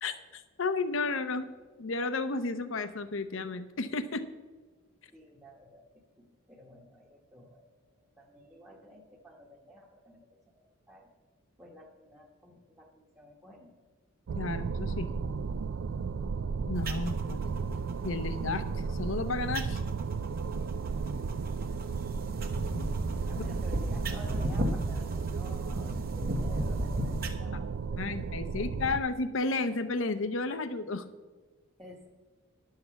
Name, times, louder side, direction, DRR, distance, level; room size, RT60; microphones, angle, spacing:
voice 1, 0.0-1.5 1.8-4.2 14.4-15.1 16.7-17.4 18.0-19.8 22.8-22.9 28.0-31.1, left 3 dB, 65° left, 12 dB, 0.7 m, -32 dB
voice 2, 5.1-11.1 11.6-13.7 20.6-21.2 21.7-21.8 23.3-28.2 31.8-32.1, equal, 10° right, -4 dB, 1.1 m, -52 dB
sound 1, 14.3-29.0, right 5 dB, 60° right, 0.4 m, -34 dB
sound 2, 16.8-27.3, equal, 45° right, 1.1 m, -37 dB
11.0 x 6.6 x 7.0 m, 1.4 s
head